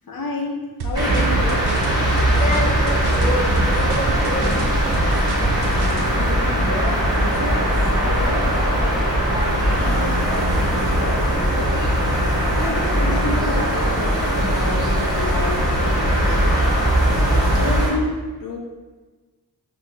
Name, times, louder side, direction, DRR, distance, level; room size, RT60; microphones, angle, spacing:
voice 1, 0.1-1.7 5.9-8.5 9.3-11.8 12.6-16.6 17.2-18.6, left 2 dB, 60° left, -1 dB, 0.6 m, -30 dB
sound 1, 0.8-6.1, right 3 dB, 75° right, 0.5 m, -29 dB
sound 2, 0.9-17.9, equal, 10° right, 1.4 m, -20 dB
voice 2, 2.4-4.5, left 1 dB, 20° left, -2 dB, 0.6 m, -28 dB
3.5 x 2.5 x 2.9 m, 1.3 s
wide cardioid pair, 65°, 39 cm